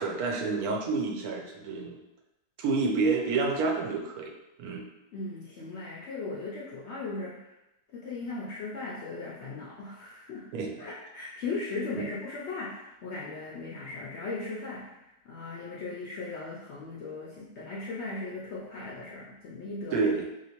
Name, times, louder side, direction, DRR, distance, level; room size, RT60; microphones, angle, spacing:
voice 1, 0.0-2.0 2.6-4.3 4.6-4.8 10.5-10.7 12.0-12.1 19.9-20.2, right 4 dB, 75° right, 1 dB, 1.0 m, -28 dB
voice 2, 5.1-7.5 7.9-10.5 10.8-20.1, left 3 dB, 70° left, -5 dB, 0.6 m, -38 dB
3.1 x 2.8 x 2.8 m, 0.92 s
omnidirectional pair, 1.6 m